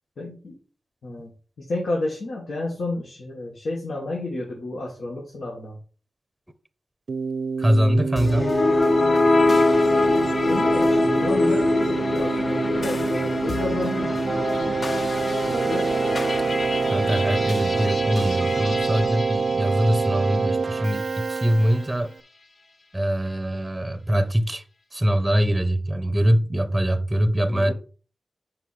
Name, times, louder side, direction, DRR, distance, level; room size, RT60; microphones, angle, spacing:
voice 1, 0.2-0.6 1.0-1.3 1.6-5.8 10.5-11.7 12.1-14.5 15.4-16.1 20.8-20.9 27.5-27.7, left 2 dB, 85° left, 1.8 m, -31 dB
Keyboard (musical), 7.1-22.1, right 5 dB, 60° right, 0.4 m, -26 dB
voice 2, 7.6-8.6 16.9-22.1 22.9-24.6 24.9-27.7, equal, 10° right, 0.7 m, -23 dB
sound 1, 8.2-20.5, left 2 dB, 45° left, 0.7 m, -24 dB
5.3 x 4.7 x 5.8 m
wide cardioid pair, 100°, 0 cm